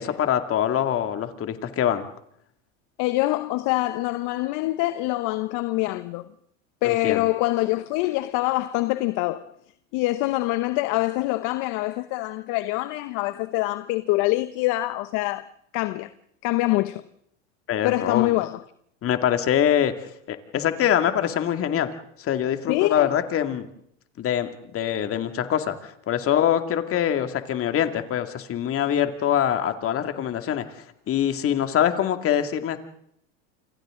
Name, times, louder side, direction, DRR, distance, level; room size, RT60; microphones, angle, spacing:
voice 1, 0.0-2.1 6.8-7.2 17.7-18.3 19.0-21.9 22.2-23.7 24.2-30.7 31.1-32.8, left 10 dB, 35° left, 2.4 m, -24 dB
voice 2, 3.0-6.2 6.8-9.5 9.9-15.5 15.7-16.1 16.4-17.0 17.8-18.6 22.7-23.1 25.0-25.1, left 18 dB, 55° left, 1.0 m, -25 dB
28.5 x 27.0 x 3.8 m
hypercardioid pair, 105°, 37 cm